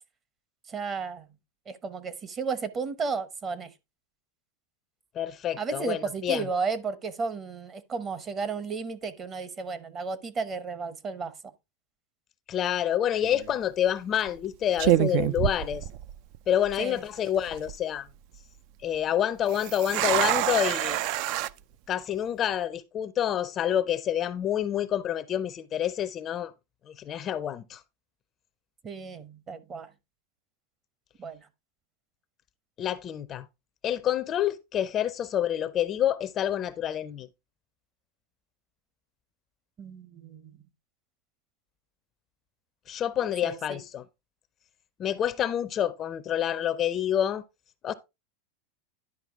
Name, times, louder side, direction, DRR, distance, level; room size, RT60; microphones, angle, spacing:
voice 1, 0.7-1.3 1.7-3.7 5.6-11.3 16.8-17.0 28.8-29.9 31.2-31.5 39.8-40.6 43.2-43.8, right 5 dB, 25° right, 0.8 m, -33 dB
voice 2, 5.1-6.5 12.5-15.8 16.5-18.1 18.8-21.0 21.9-26.5 26.9-27.8 32.8-33.5 33.8-37.3 42.9-44.0 45.0-47.4 47.8-47.9, left 10 dB, 30° left, 0.5 m, -28 dB
sound 1, 13.2-13.5 14.3-14.5 14.8-16.4 16.7-16.8 17.4-17.8 19.5-21.5, right 14 dB, 50° right, 0.4 m, -26 dB
10.5 x 5.0 x 3.5 m
supercardioid pair, 140°, 0 cm